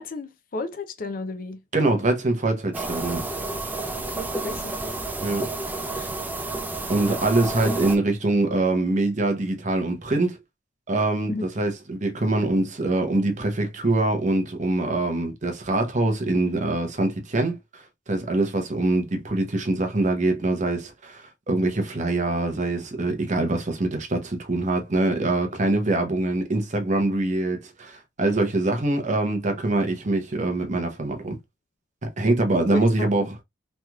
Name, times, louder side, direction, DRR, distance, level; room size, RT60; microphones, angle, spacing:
voice 1, 0.0-1.6 4.0-4.7 6.0-6.1 11.3-11.5 32.7-33.1, left 3 dB, 50° left, 0.5 m, -33 dB
voice 2, 1.7-3.2 5.2-5.4 6.9-10.4 10.9-17.8 18.1-31.4 32.2-33.2, right 2 dB, 40° right, 0.8 m, -24 dB
sound 1, 2.7-8.0, right 2 dB, 10° right, 0.4 m, -30 dB
3.3 x 2.9 x 2.2 m
head